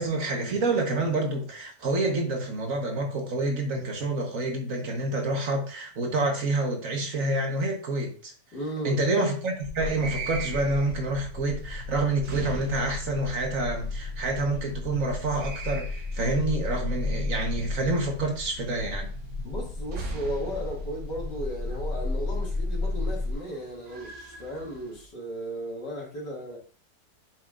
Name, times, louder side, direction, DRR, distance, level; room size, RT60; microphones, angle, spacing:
voice 1, 0.0-8.3 8.8-19.1, right 2 dB, 55° right, 1.5 m, -28 dB
voice 2, 8.5-9.0 19.4-26.6, equal, 80° left, 2.9 m, -35 dB
sound 1, 9.6-23.3, left 3 dB, 45° left, 0.9 m, -33 dB
sound 2, 9.9-25.1, right 5 dB, 70° right, 1.6 m, -43 dB
8.4 x 6.2 x 2.5 m
omnidirectional pair, 1.9 m